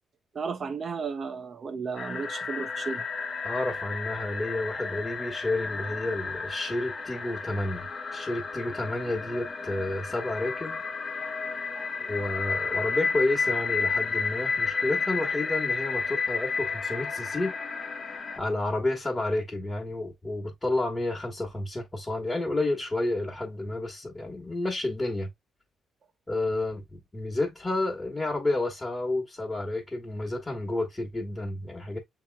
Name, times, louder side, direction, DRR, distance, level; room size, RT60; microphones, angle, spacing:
voice 1, 0.3-3.0 11.2-11.3 11.7-11.9, right 5 dB, 45° right, 0.6 m, -34 dB
sound 1, 2.0-18.4, left 5 dB, 40° left, 1.0 m, -32 dB
voice 2, 3.4-10.8 12.0-17.5 18.4-25.3 26.3-32.0, left 2 dB, 20° left, 1.3 m, -30 dB
6.8 x 3.0 x 2.3 m
cardioid pair, 90°, 0 cm